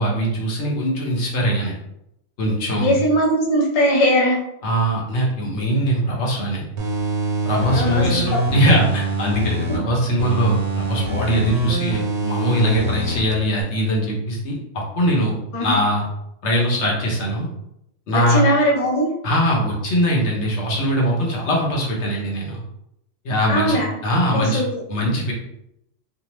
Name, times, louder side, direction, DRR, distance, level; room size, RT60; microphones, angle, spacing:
voice 1, 0.0-1.8 2.4-3.0 4.6-6.7 7.4-15.3 15.6-16.0 16.4-17.5 18.1-18.4 19.2-22.6 23.2-24.6 24.9-25.3, equal, 70° left, -2 dB, 1.0 m, -21 dB
voice 2, 2.8-4.4 7.7-8.4 15.5-15.8 18.1-19.1 23.5-23.9 24.3-24.8, equal, 40° left, -3 dB, 0.5 m, -20 dB
sound 1, 6.8-9.8 10.2-13.2 13.6-13.7, right 2 dB, 85° right, 1.0 m, -24 dB
2.7 x 2.1 x 2.9 m, 0.80 s
omnidirectional pair, 1.3 m